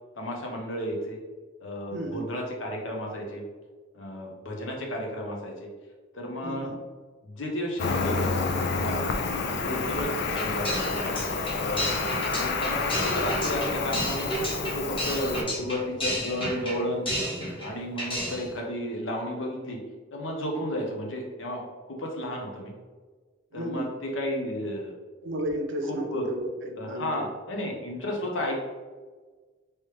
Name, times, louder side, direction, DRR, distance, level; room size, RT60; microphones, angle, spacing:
voice 1, 0.2-1.2 1.6-3.4 3.9-5.7 6.1-6.7 7.2-9.1 9.5-10.9 11.6-11.9 12.3-14.3 14.7-17.1 17.6-19.8 20.1-22.7 23.5-24.9 25.8-26.3 26.8-28.6, equal, 85° left, 0 dB, 0.8 m, -33 dB
voice 2, 1.9-2.3 6.4-6.8 23.5-23.9 25.2-27.1, right 1 dB, 80° right, 4 dB, 0.6 m, -33 dB
Cricket, 7.8-15.4, left 4 dB, 60° left, 0.4 m, -29 dB
sound 1, 10.4-17.7 18.0-18.5, equal, 30° left, 1.2 m, -32 dB
3.2 x 3.1 x 3.1 m, 1.4 s
head